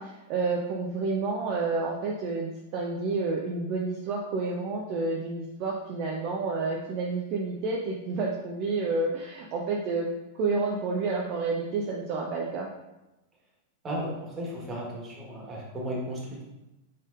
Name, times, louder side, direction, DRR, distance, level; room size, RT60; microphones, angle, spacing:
voice 1, 0.0-10.1 10.4-12.7, right 3 dB, 45° right, -1 dB, 0.6 m, -29 dB
voice 2, 13.8-16.4, equal, 20° right, -2 dB, 1.5 m, -35 dB
4.9 x 4.2 x 2.6 m, 0.99 s
figure-of-eight pair, 95°, 0 cm